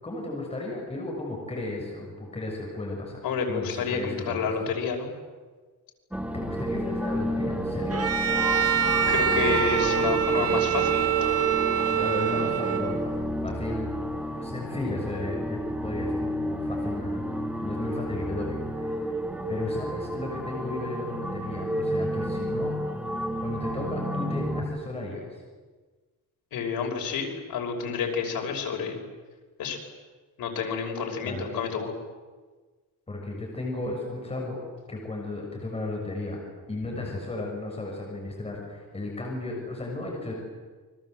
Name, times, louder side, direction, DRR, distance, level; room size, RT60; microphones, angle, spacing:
voice 1, 0.0-4.5 6.3-8.0 11.9-13.1 13.4-13.9 14.4-18.9 19.5-22.7 23.4-25.2 31.2-31.5 33.1-34.6 34.9-36.4 36.7-40.3, left 2 dB, 20° left, -1 dB, 6.5 m, -34 dB
voice 2, 3.2-5.1 9.1-11.1 26.5-29.0 29.6-29.8 30.4-31.9, left 6 dB, 85° left, 2 dB, 5.9 m, -29 dB
sound 1, 6.1-24.6, equal, 5° right, 2.0 m, -31 dB
Bowed string instrument, 7.9-13.2, right 9 dB, 45° right, 1.6 m, -25 dB
29.0 x 24.0 x 7.9 m, 1.4 s
cardioid pair, 135°, 34 cm